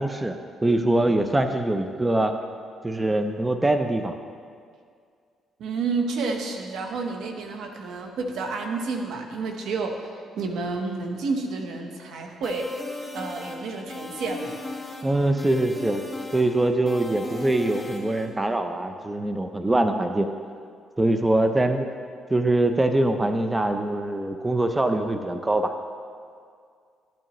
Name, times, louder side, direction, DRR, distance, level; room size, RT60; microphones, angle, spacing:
voice 1, 0.0-2.3 2.8-4.2 15.0-16.0 16.3-20.3 21.0-21.8 22.3-25.7, right 1 dB, 15° right, 7 dB, 0.5 m, -23 dB
voice 2, 5.6-12.8 13.1-14.5, right 4 dB, 80° right, 3 dB, 1.0 m, -30 dB
sound 1, 12.4-18.3, left 2 dB, 10° left, 1.4 m, -37 dB
12.0 x 8.9 x 3.0 m, 2.1 s
cardioid pair, 90°, 0 cm